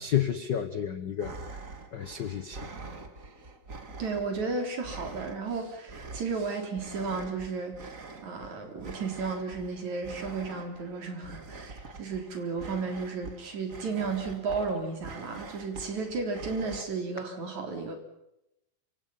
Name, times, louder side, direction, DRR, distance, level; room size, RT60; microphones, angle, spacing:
voice 1, 0.0-1.3 1.9-2.7, left 9 dB, 80° left, 10 dB, 0.9 m, -30 dB
sound 1, 1.2-16.8, right 3 dB, 30° right, 1.7 m, -45 dB
voice 2, 4.0-18.0, right 4 dB, 60° right, 4 dB, 5.0 m, -33 dB
28.5 x 26.0 x 5.7 m, 0.86 s
omnidirectional pair, 3.9 m